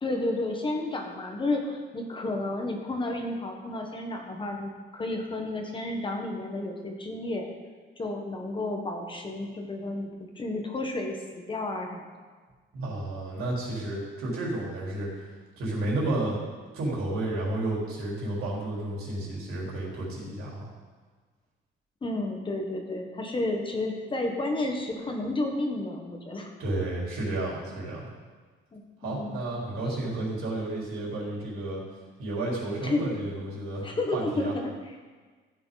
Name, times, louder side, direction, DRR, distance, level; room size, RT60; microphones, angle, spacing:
voice 1, 0.0-7.5 8.0-12.0 22.0-26.5 28.7-29.4 29.9-30.1 32.8-33.1 33.8-34.9, left 2 dB, 25° left, 2 dB, 1.3 m, -31 dB
voice 2, 12.7-15.3 15.6-16.4 16.7-20.7 26.6-28.0 29.0-31.8 32.2-34.5, right 2 dB, 80° right, -5 dB, 4.1 m, -31 dB
15.0 x 8.7 x 4.1 m, 1.4 s
cardioid pair, 170°, 21 cm